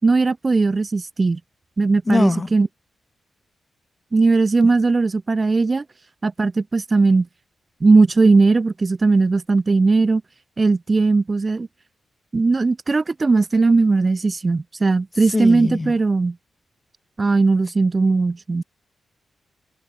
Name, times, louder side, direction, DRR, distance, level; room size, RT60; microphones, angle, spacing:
voice 1, 0.0-1.4 1.8-2.7 4.1-5.8 6.2-7.3 7.8-10.2 10.6-11.7 12.3-16.4 17.2-18.6, right 3 dB, 25° right, 6.5 m, -18 dB
voice 2, 2.1-2.5 15.3-15.9, left 3 dB, 20° left, 8.0 m, -21 dB
wide cardioid pair, 160°, 0 cm